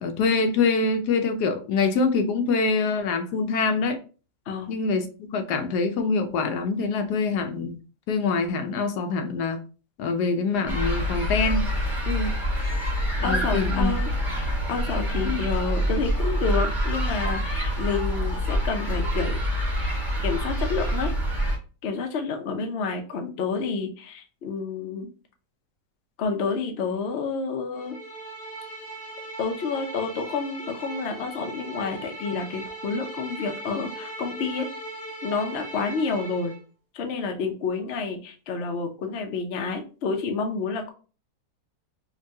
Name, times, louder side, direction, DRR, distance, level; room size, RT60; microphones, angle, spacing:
voice 1, 0.0-4.0 4.7-7.8 8.1-9.6 10.0-11.6 13.2-13.9, left 4 dB, 75° left, 1.2 m, -25 dB
sound 1, 10.7-21.6, equal, ahead, 0.9 m, -26 dB
voice 2, 12.1-12.4 13.2-19.3 20.2-21.1 21.8-25.1 26.2-28.0 29.4-34.7 35.2-36.5 36.9-40.9, left 4 dB, 55° left, 0.7 m, -29 dB
sound 2, 27.7-36.6, right 2 dB, 35° left, 1.2 m, -39 dB
5.3 x 2.2 x 2.7 m
omnidirectional pair, 1.8 m